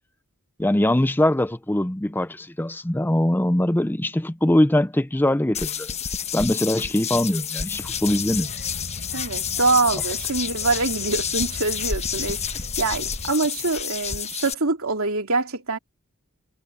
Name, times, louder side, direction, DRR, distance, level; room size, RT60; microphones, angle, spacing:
voice 1, 0.6-5.9 6.3-8.5, left 1 dB, 10° left, 0.6 m, -22 dB
sound 1, 5.5-14.5, left 8 dB, 30° left, 1.2 m, -30 dB
Child speech kid speaking, 7.7-13.3, left 1 dB, 55° left, 3.7 m, -37 dB
voice 2, 9.1-15.8, right 3 dB, 85° right, 2.9 m, -25 dB
head